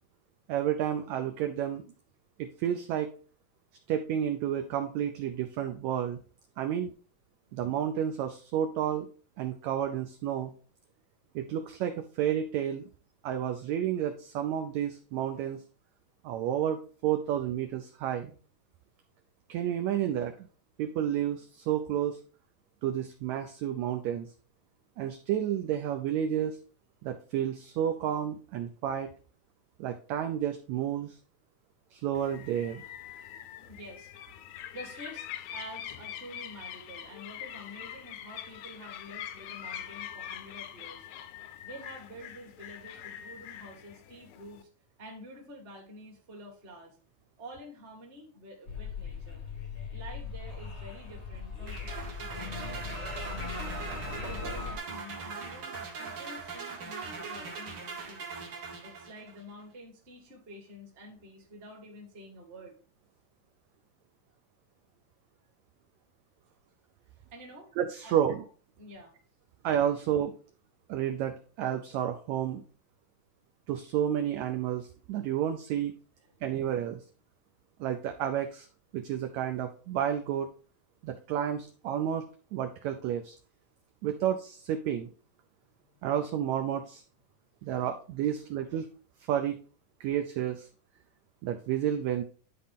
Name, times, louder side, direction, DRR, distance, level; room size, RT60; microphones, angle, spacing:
voice 1, 0.5-1.8 2.4-3.1 3.9-6.2 6.6-6.9 7.5-9.1 9.4-10.5 11.3-12.9 13.2-15.6 16.2-18.3 19.5-20.3 20.8-22.2 22.8-24.3 25.0-26.6 27.0-29.1 29.8-31.2 31.9-32.8 67.8-68.4 69.6-70.3 70.9-72.6 73.7-75.9 76.4-77.0 77.8-78.7 78.9-80.5 81.0-82.3 82.5-83.3 84.0-85.1 86.0-87.0 87.6-88.9 89.3-89.6 90.0-90.7 91.4-92.2, right 10 dB, 80° right, 6 dB, 1.7 m, -31 dB
sound 1, 32.1-44.6, left 10 dB, 80° left, 1.9 m, -44 dB
voice 2, 33.7-34.1 34.7-41.1 41.6-44.7 45.0-47.0 47.4-49.4 49.9-53.8 54.1-58.4 58.8-62.7 67.3-67.7 68.0-68.2 68.8-69.1 85.9-86.0 87.6-87.8 88.2-88.4 88.7-88.8, equal, 25° right, 0 dB, 1.4 m, -48 dB
sound 2, 48.7-54.8, left 5 dB, 50° left, 0.7 m, -39 dB
sound 3, 51.7-59.4, right 4 dB, 50° right, 1.4 m, -41 dB
10.5 x 4.2 x 3.6 m, 0.39 s
omnidirectional pair, 3.7 m